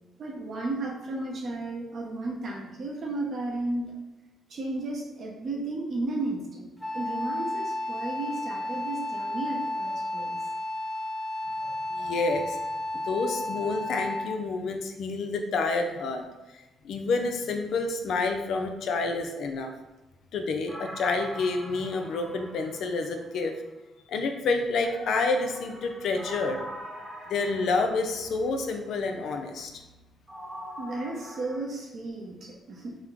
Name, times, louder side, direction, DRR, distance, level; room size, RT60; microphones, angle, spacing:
voice 1, 0.2-3.9 4.5-10.4 30.8-33.0, right 2 dB, 50° right, -1 dB, 0.6 m, -34 dB
Wind instrument woodwind instrument, 6.8-14.4, left 1 dB, 10° left, 0.6 m, -32 dB
voice 2, 11.6-12.6 12.9-16.2 16.5-19.7 20.3-23.6 24.1-26.6 27.3-29.8, left 3 dB, 70° left, 5 dB, 0.4 m, -29 dB
sound 1, 20.7-23.5 24.8-28.6 30.3-31.6, equal, 25° right, 0.9 m, -43 dB
3.0 x 2.1 x 3.6 m, 1.1 s
cardioid pair, 90°, 0 cm